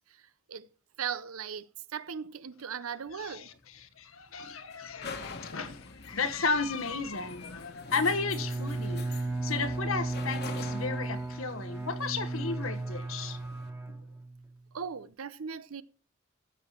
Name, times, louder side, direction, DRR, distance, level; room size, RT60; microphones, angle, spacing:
voice 1, 0.1-0.7 1.0-3.5 14.7-15.8, right 7 dB, 90° right, 0.7 m, -38 dB
sound 1, 3.1-13.7, left 4 dB, 50° left, 1.5 m, -46 dB
voice 2, 3.2-3.5 3.8-9.0 9.4-13.4, left 4 dB, 70° left, 1.2 m, -34 dB
Bowed string instrument, 7.9-14.5, right 2 dB, 10° right, 1.4 m, -35 dB
14.5 x 6.7 x 4.4 m
head